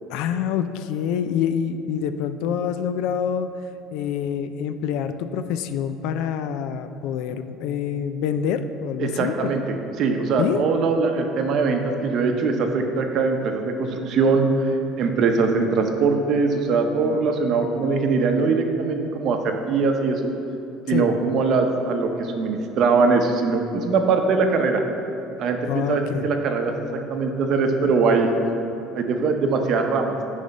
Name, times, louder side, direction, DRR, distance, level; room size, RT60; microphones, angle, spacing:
voice 1, 0.1-3.5 3.9-9.5 10.4-10.6 20.9-21.1 25.7-26.3, left 8 dB, 70° left, 10 dB, 0.4 m, -26 dB
voice 2, 9.0-20.3 20.9-24.8 25.4-26.7 27.1-28.3 28.9-30.1, right 4 dB, 50° right, 4 dB, 0.7 m, -22 dB
9.1 x 3.3 x 5.3 m, 3.0 s
cardioid pair, 150°, 0 cm